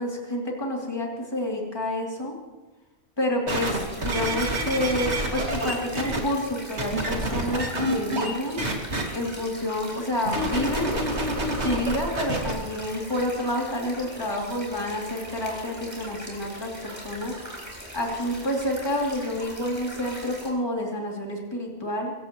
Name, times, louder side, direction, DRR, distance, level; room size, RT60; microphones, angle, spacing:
voice 1, 0.0-2.3 3.2-8.6 9.1-11.0 11.6-17.4 17.9-22.1, left 1 dB, 20° left, -2 dB, 3.0 m, -29 dB
sound 1, 3.5-20.5, equal, 15° right, 4.7 m, -41 dB
sound 2, 3.5-6.2 6.8-8.3 8.6-9.0 10.3-12.5 13.2-13.3, right 1 dB, 70° right, 2.6 m, -27 dB
25.0 x 16.0 x 3.1 m, 1.2 s
omnidirectional pair, 1.2 m